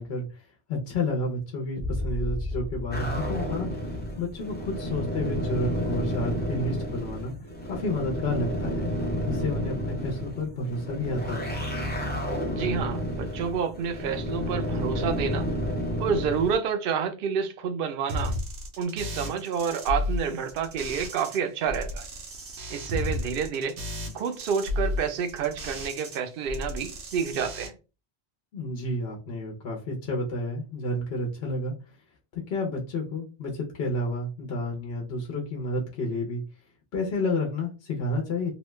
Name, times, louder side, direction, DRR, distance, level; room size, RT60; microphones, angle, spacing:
voice 1, 0.0-7.3 7.7-8.9 9.3-11.6 28.5-32.0 32.3-36.4 36.9-38.5, left 2 dB, 70° left, 1.0 m, -30 dB
sound 1, 1.8-5.8, left 1 dB, 30° left, 0.9 m, -35 dB
sound 2, 2.9-16.5, equal, 10° left, 0.5 m, -31 dB
voice 2, 12.5-15.5 16.0-18.4 18.8-22.1 22.7-23.8 24.1-27.7, right 6 dB, 65° right, 0.7 m, -29 dB
sound 3, 18.1-21.4 21.7-26.2 26.5-27.7, left 1 dB, 85° right, 1.1 m, -33 dB
3.0 x 2.2 x 3.1 m
omnidirectional pair, 1.1 m